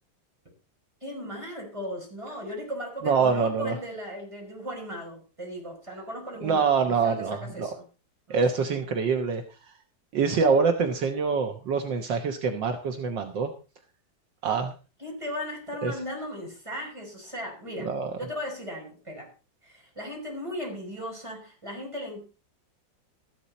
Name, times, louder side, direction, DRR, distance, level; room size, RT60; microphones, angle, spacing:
voice 1, 1.0-7.8 8.3-8.4 15.0-17.9 18.1-19.3 19.6-22.2, equal, 15° right, -1 dB, 5.8 m, -37 dB
voice 2, 3.0-3.8 6.4-7.7 8.3-9.4 10.1-13.5 14.4-14.7 15.8-15.9 17.8-18.1, right 5 dB, 70° right, 5 dB, 1.9 m, -25 dB
13.5 x 11.5 x 4.2 m, 0.33 s
omnidirectional pair, 2.1 m